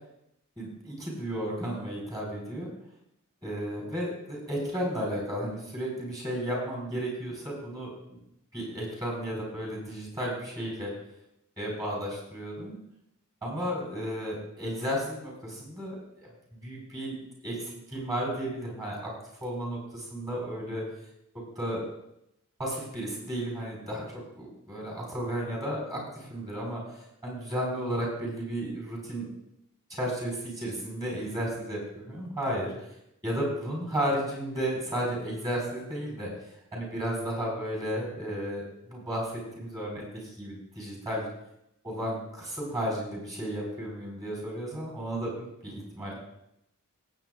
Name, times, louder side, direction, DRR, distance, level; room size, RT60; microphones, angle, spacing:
voice 1, 0.6-2.7 3.4-8.2 8.5-10.9 11.6-12.7 13.4-17.2 17.4-19.1 19.4-20.8 21.6-21.9 22.6-29.3 29.9-32.7 33.2-36.3 36.7-40.0 40.3-41.3 41.8-46.1, equal, 15° right, -2 dB, 4.6 m, -33 dB
19.5 x 8.3 x 2.6 m, 0.81 s
head